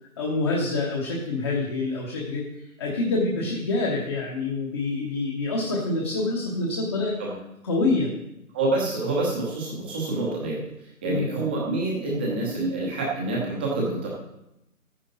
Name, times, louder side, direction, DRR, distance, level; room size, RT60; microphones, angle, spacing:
voice 1, 0.2-2.4 2.8-7.1 7.6-8.1 11.1-11.3, left 3 dB, 20° left, -3 dB, 1.1 m, -26 dB
voice 2, 8.5-10.6 11.0-14.1, right 2 dB, 5° right, -3 dB, 0.9 m, -27 dB
12.5 x 9.8 x 4.0 m, 0.87 s
figure-of-eight pair, 150°, 44 cm